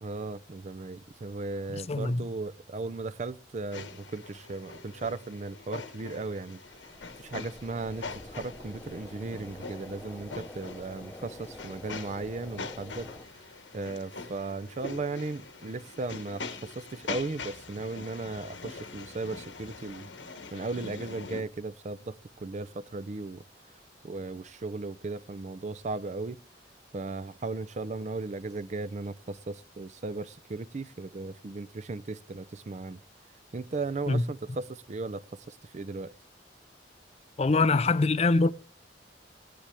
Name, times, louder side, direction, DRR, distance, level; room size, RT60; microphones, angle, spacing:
voice 1, 0.0-6.6 7.2-13.1 13.7-20.1 20.5-23.4 24.0-26.4 26.9-33.0 33.5-36.1, right 3 dB, 40° right, 0.5 m, -36 dB
voice 2, 1.9-2.2 34.1-34.2 37.4-38.5, left 3 dB, 35° left, 0.5 m, -23 dB
sound 1, 3.7-21.4, left 4 dB, 90° left, 1.3 m, -43 dB
sound 2, 6.6-13.2, left 1 dB, 10° left, 0.8 m, -47 dB
17.0 x 10.0 x 3.3 m
head